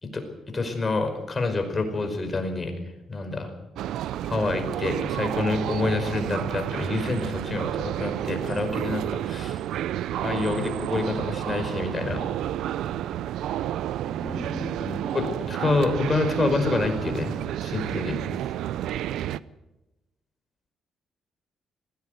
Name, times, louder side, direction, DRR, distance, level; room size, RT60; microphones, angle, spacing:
voice 1, 0.0-2.7 3.1-3.5 4.3-9.6 10.2-12.2 15.1-17.3 17.6-18.2, left 3 dB, 30° left, 5 dB, 5.2 m, -27 dB
sound 1, 3.8-19.4, right 12 dB, 85° right, 0.6 m, -30 dB
voice 2, 14.2-15.3, equal, 10° right, 3 dB, 2.8 m, -36 dB
19.5 x 16.5 x 8.0 m, 0.97 s
cardioid pair, 90°, 0 cm